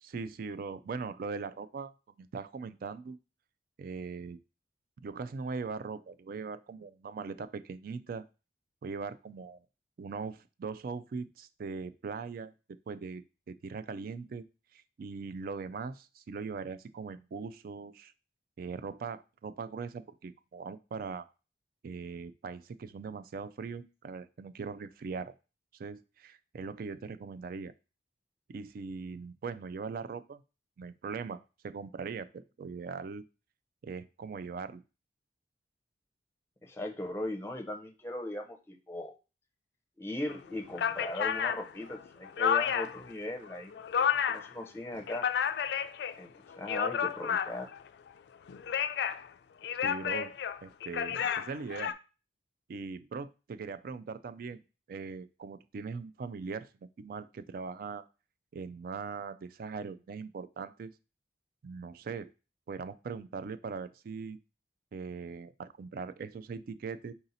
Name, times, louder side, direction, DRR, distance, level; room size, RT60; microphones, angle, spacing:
voice 1, 0.0-1.9 2.2-3.2 3.8-4.4 5.0-8.2 8.8-9.6 10.0-12.5 12.9-14.5 14.7-18.1 18.6-21.3 21.8-25.3 25.8-27.7 28.5-30.4 30.8-33.2 33.8-34.8 49.8-50.3 50.6-51.9 52.7-54.6 54.9-56.7 57.0-58.0 58.5-60.9 61.6-62.3 62.7-64.4 64.9-67.1, right 5 dB, 55° right, 13 dB, 0.3 m, -40 dB
voice 2, 36.6-39.1 40.0-43.7 44.3-45.3 46.1-47.7, left 1 dB, 15° left, 4 dB, 0.6 m, -38 dB
sound 1, 40.3-40.4 40.7-43.1 43.4-44.5 44.9-46.1 46.5-47.8 48.5-49.3 49.6-51.9, left 8 dB, 70° left, 0.3 m, -31 dB
4.8 x 2.7 x 3.9 m, 0.31 s
head